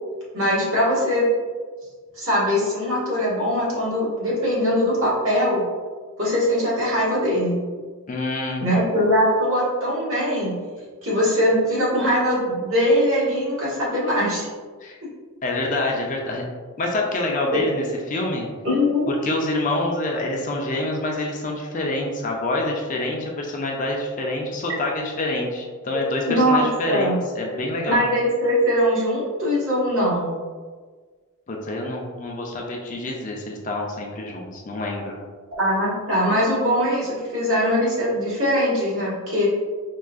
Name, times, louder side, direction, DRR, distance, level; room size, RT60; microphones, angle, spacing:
voice 1, 0.3-1.2 2.1-5.6 6.2-7.6 8.6-10.6 11.0-14.4 18.6-19.1 26.3-27.2 27.9-30.4 35.6-39.5, equal, 70° right, -8 dB, 1.5 m, -21 dB
voice 2, 8.1-8.7 14.8-15.0 15.4-16.4 16.8-18.5 19.1-28.0 31.5-35.2, left 2 dB, 35° left, -1 dB, 0.4 m, -26 dB
4.5 x 2.4 x 2.4 m, 1.5 s
head